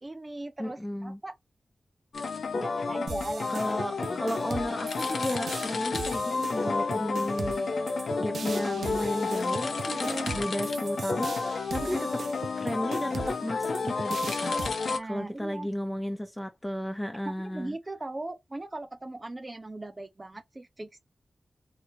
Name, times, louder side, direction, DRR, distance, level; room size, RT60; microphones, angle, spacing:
voice 1, 0.0-1.4 2.5-3.6 4.0-4.2 9.9-10.4 11.8-12.0 14.9-15.7 17.2-21.0, right 2 dB, 30° right, 0.7 m, -39 dB
voice 2, 0.6-1.2 3.5-12.0 12.6-14.6 15.0-17.7, left 1 dB, 10° left, 1.1 m, -34 dB
sound 1, 2.1-15.0, left 4 dB, 85° left, 1.0 m, -31 dB
sound 2, 3.1-14.7, right 5 dB, 80° right, 0.6 m, -39 dB
4.0 x 3.2 x 3.2 m
wide cardioid pair, 75°, 0 cm